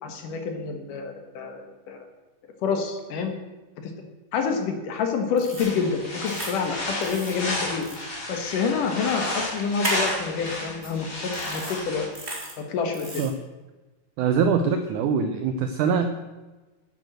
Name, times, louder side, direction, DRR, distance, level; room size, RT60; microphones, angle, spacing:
voice 1, 0.0-2.1 2.6-3.3 3.8-3.9 4.3-7.9 8.3-12.1 12.6-13.2, left 5 dB, 65° left, 5 dB, 2.7 m, -28 dB
sound 1, 5.4-5.7 6.3-6.5 7.0-7.3 7.8-8.0 9.8-10.1 10.8-10.9 11.3-11.8 12.1-12.5 12.9-13.3, right 1 dB, 20° right, 2.4 m, -34 dB
sound 2, 5.6-12.1, left 1 dB, 25° left, 3.4 m, -32 dB
voice 2, 14.2-16.1, right 6 dB, 80° right, 7 dB, 1.8 m, -23 dB
10.0 x 9.6 x 7.8 m, 1.2 s
omnidirectional pair, 4.4 m